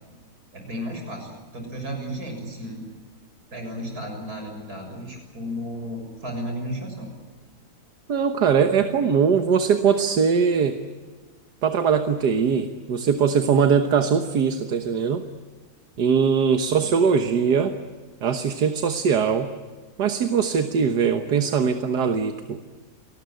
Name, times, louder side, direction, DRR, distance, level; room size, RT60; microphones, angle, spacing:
voice 1, 0.5-2.9 3.5-7.1 16.7-16.9, equal, 70° right, 3 dB, 7.5 m, -34 dB
voice 2, 8.1-10.8 11.6-15.2 16.0-17.8 18.2-19.5 20.0-22.6, right 6 dB, 85° right, 7 dB, 1.8 m, -21 dB
29.0 x 19.5 x 9.2 m, 1.4 s
omnidirectional pair, 1.7 m